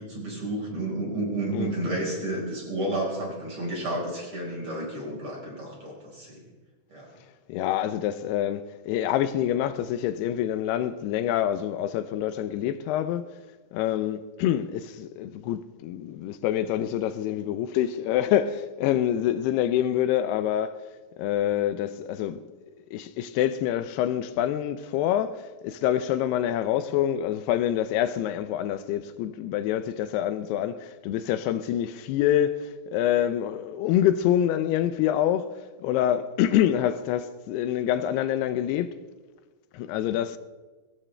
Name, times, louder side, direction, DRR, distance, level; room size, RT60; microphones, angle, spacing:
voice 1, 0.0-6.4 6.9-7.1, right 1 dB, 30° right, 5.3 m, -31 dB
voice 2, 7.5-13.3 13.7-20.8 21.2-22.4 22.9-35.5 35.8-39.0 39.7-40.4, left 11 dB, 85° left, 2.7 m, -26 dB
22.0 x 17.5 x 3.4 m
omnidirectional pair, 4.6 m